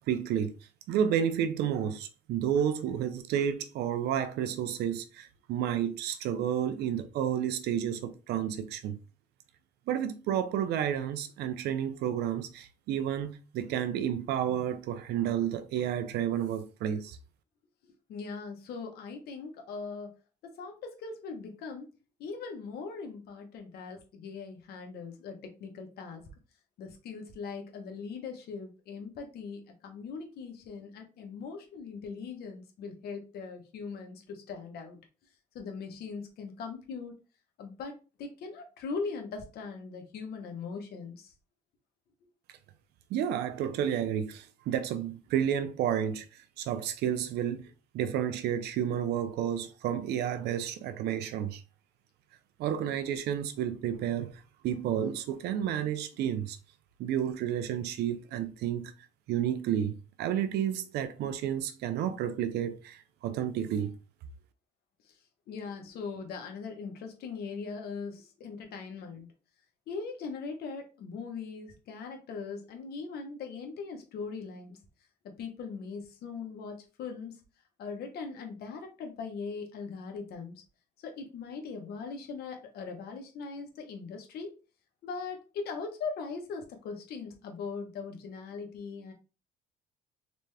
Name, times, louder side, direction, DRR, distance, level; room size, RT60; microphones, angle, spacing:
voice 1, 0.1-0.5 0.9-9.0 9.9-17.2 43.1-47.7 47.9-51.6 52.6-56.6 57.0-58.9 59.3-63.9, right 9 dB, 75° right, 0.7 m, -31 dB
voice 2, 18.1-20.1 20.4-21.9 22.2-26.2 26.8-35.0 35.5-37.2 37.6-41.3 65.5-69.3 69.9-74.8 75.2-77.3 77.8-80.6 81.0-84.5 85.0-89.1, left 5 dB, 70° left, 1.2 m, -40 dB
4.0 x 3.3 x 3.3 m
cardioid pair, 110°, 17 cm